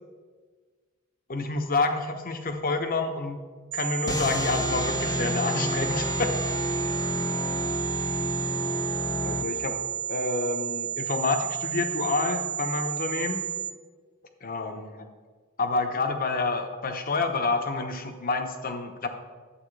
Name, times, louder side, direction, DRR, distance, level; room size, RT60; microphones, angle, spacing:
voice 1, 1.3-3.4 3.7-6.3 9.2-9.8 10.1-13.4 14.4-15.0 15.6-19.1, left 3 dB, 40° left, 6 dB, 0.9 m, -28 dB
sound 1, 3.7-13.7, right 10 dB, 85° right, 0.4 m, -32 dB
sound 2, 4.1-9.9, left 2 dB, 15° left, 0.4 m, -30 dB
11.0 x 8.1 x 3.2 m, 1.5 s
head